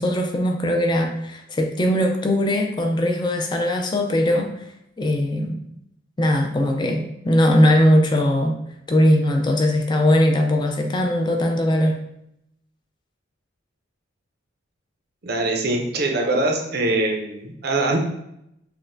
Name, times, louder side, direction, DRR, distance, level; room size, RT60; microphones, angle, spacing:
voice 1, 0.0-4.5 5.0-5.6 6.2-8.5 8.9-12.0, equal, 25° left, 2 dB, 0.5 m, -20 dB
voice 2, 15.2-18.0, right 2 dB, 55° right, 1 dB, 0.6 m, -23 dB
5.8 x 2.2 x 2.6 m, 0.80 s
head